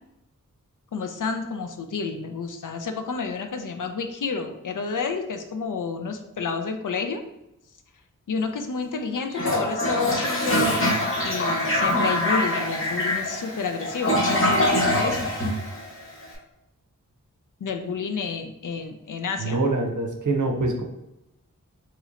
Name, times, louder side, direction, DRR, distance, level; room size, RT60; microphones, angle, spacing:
voice 1, 0.9-7.2 8.3-11.0 11.2-15.3 17.6-19.6, left 5 dB, 70° left, 6 dB, 0.4 m, -30 dB
Toilet flush, 9.3-16.2, left 1 dB, 40° left, 0.8 m, -24 dB
voice 2, 19.4-20.8, right 2 dB, 65° right, 2 dB, 0.6 m, -24 dB
3.0 x 3.0 x 2.4 m, 0.88 s
wide cardioid pair, 70°, 33 cm